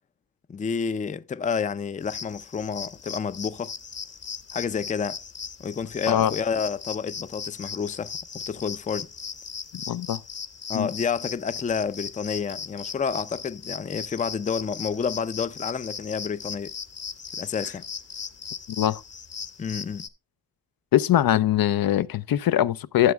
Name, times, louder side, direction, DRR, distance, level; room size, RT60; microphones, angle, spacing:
voice 1, 0.5-3.7 4.5-5.2 5.6-9.1 10.7-16.7 17.4-17.8 19.6-20.1, left 6 dB, 20° left, 0.4 m, -29 dB
sound 1, 2.0-20.1, left 6 dB, 40° left, 1.0 m, -38 dB
voice 2, 9.9-10.2 10.7-10.9 18.8-19.0 20.9-23.1, left 12 dB, 70° left, 0.5 m, -22 dB
12.5 x 7.1 x 2.3 m
cardioid pair, 95°, 36 cm